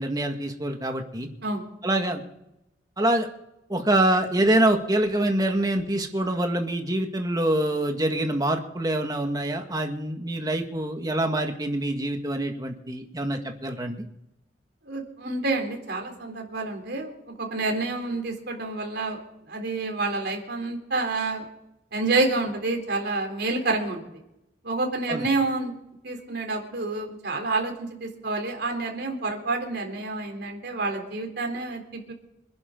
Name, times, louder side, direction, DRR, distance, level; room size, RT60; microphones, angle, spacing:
voice 1, 0.0-1.3 1.8-2.2 3.0-3.3 3.7-14.0 25.1-25.3, right 1 dB, 20° right, 4 dB, 1.9 m, -25 dB
voice 2, 14.8-19.2 19.5-21.5 21.9-24.0 24.6-25.8 26.0-32.1, right 3 dB, 60° right, 2 dB, 3.7 m, -28 dB
26.5 x 11.0 x 3.9 m, 0.85 s
head